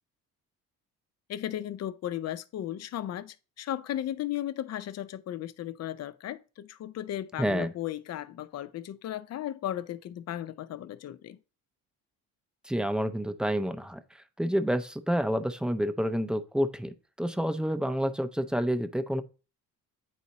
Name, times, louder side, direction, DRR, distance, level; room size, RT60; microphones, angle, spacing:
voice 1, 1.3-11.4, left 12 dB, 50° left, 0.6 m, -35 dB
voice 2, 7.4-7.7 12.6-19.2, equal, 5° right, 0.5 m, -29 dB
9.3 x 4.1 x 2.8 m
cardioid pair, 95°, 32 cm